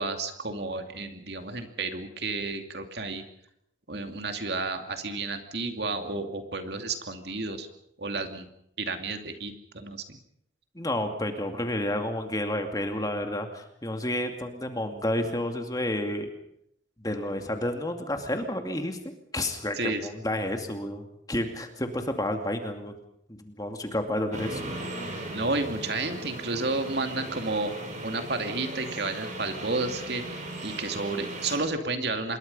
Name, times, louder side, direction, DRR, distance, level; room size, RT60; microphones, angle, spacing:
voice 1, 0.0-3.2 3.9-7.7 8.0-8.5 8.8-10.2 19.7-20.1 25.3-27.7 28.0-32.4, right 3 dB, 55° right, 6 dB, 2.5 m, -31 dB
voice 2, 10.7-16.3 17.0-19.0 19.3-23.0 23.3-24.6, left 1 dB, 20° left, 5 dB, 2.4 m, -30 dB
sound 1, 24.3-31.6, right 1 dB, 40° right, 5.7 m, -37 dB
26.5 x 22.5 x 5.5 m, 0.73 s
head